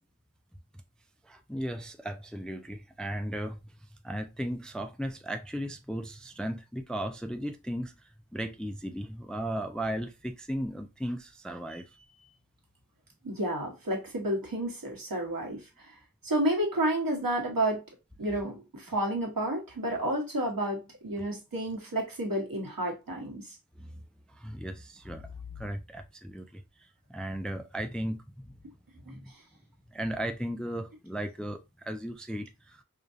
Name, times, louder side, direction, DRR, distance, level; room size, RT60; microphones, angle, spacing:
voice 1, 1.2-12.3 23.8-24.0 24.3-28.6 29.1-29.3 29.9-32.8, equal, ahead, 0.4 m, -36 dB
voice 2, 13.2-15.9 16.2-17.8 18.2-23.6 29.1-29.4, right 1 dB, 75° right, 1.4 m, -31 dB
4.9 x 2.3 x 2.6 m
wide cardioid pair, 60°, 35 cm